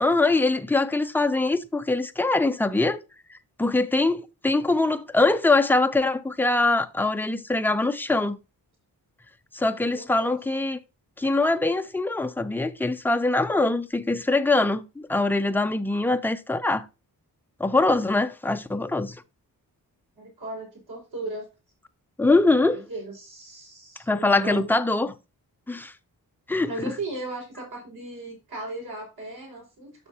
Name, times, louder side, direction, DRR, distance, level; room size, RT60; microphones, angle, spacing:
voice 1, 0.0-3.0 3.6-8.4 9.5-10.8 11.2-16.8 17.6-19.2 22.2-22.8 24.1-25.2 25.7-25.9 26.5-26.9, left 2 dB, 5° left, 0.4 m, -23 dB
voice 2, 9.9-10.4 20.2-21.4 22.7-24.6 26.6-30.1, right 2 dB, 90° right, 5.1 m, -36 dB
11.0 x 6.3 x 2.8 m
wide cardioid pair, 140°, 36 cm